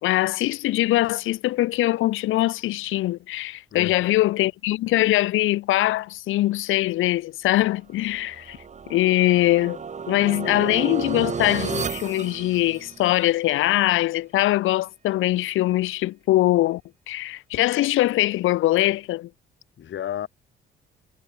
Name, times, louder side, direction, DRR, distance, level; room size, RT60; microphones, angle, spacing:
voice 1, 0.0-8.6 8.9-9.8 10.1-16.8 17.1-19.3, left 16 dB, 90° left, 2.3 m, -22 dB
voice 2, 3.7-4.2 19.8-20.3, left 10 dB, 70° left, 5.3 m, -32 dB
sound 1, 8.1-13.3, right 6 dB, 35° right, 1.4 m, -33 dB
cardioid pair, 90°, 20 cm